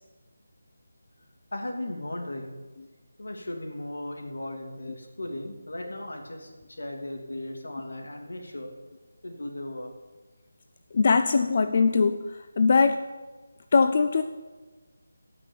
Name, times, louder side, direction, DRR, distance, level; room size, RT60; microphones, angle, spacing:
voice 1, 1.5-2.6 3.2-8.7 9.2-9.9, left 1 dB, 70° left, 2 dB, 2.6 m, -36 dB
voice 2, 10.9-12.2 12.6-13.1 13.7-14.2, left 4 dB, 25° left, 8 dB, 0.3 m, -21 dB
14.0 x 6.1 x 8.2 m, 1.3 s
figure-of-eight pair, 180°, 0 cm